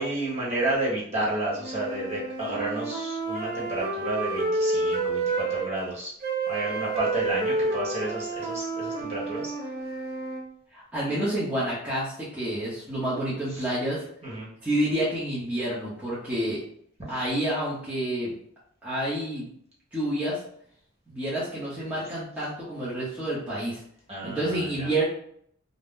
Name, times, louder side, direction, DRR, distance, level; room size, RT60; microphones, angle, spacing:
voice 1, 0.0-6.1 6.5-9.5 14.2-14.5 17.1-17.2 24.1-24.9, right 2 dB, 30° right, -6 dB, 1.1 m, -31 dB
sound 1, 1.6-5.7 6.2-10.4, right 3 dB, 45° right, 0.5 m, -29 dB
voice 2, 10.7-14.1 14.6-16.6 17.1-18.3 18.8-19.5 19.9-20.4 21.1-23.8 24.2-25.0, right 1 dB, 10° right, -10 dB, 0.7 m, -29 dB
2.6 x 2.1 x 3.6 m, 0.65 s
head